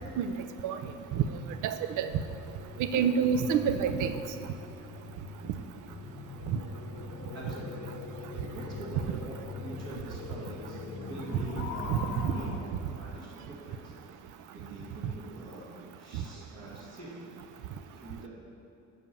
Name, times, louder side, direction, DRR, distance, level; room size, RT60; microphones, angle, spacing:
sound 1, 1.4-12.6, left 4 dB, 80° left, 0.9 m, -42 dB
voice 1, 1.6-2.1 2.9-4.1 6.5-6.6 11.9-12.0 12.2-12.3, right 7 dB, 80° right, 10 dB, 0.6 m, -27 dB
voice 2, 7.3-7.9 8.4-18.3, right 1 dB, 55° right, -6 dB, 2.2 m, -45 dB
7.2 x 5.9 x 6.9 m, 2.7 s
cardioid pair, 90°, 30 cm